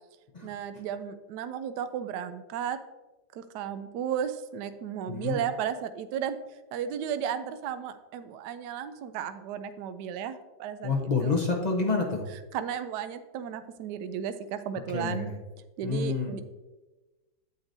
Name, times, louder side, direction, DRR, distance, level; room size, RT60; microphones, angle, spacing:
voice 1, 0.4-2.8 3.3-6.4 6.7-11.4 12.5-15.3 15.8-16.4, right 8 dB, 70° right, 10 dB, 1.1 m, -34 dB
voice 2, 5.1-5.4 10.8-12.2 14.9-15.3 15.8-16.4, left 4 dB, 35° left, 0 dB, 0.7 m, -28 dB
9.6 x 7.6 x 2.7 m, 1.1 s
omnidirectional pair, 2.0 m